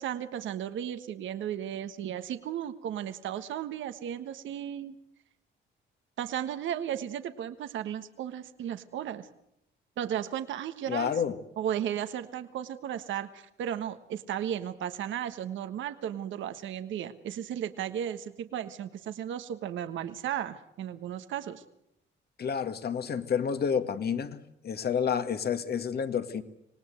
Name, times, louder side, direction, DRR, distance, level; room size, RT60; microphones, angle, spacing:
voice 1, 0.0-4.9 6.2-9.3 10.0-11.1 11.6-21.6, right 10 dB, 75° right, 10 dB, 1.4 m, -35 dB
voice 2, 10.9-11.4 22.4-26.4, left 7 dB, 55° left, 9 dB, 1.9 m, -29 dB
26.5 x 18.5 x 7.9 m, 0.79 s
cardioid pair, 85°, 20 cm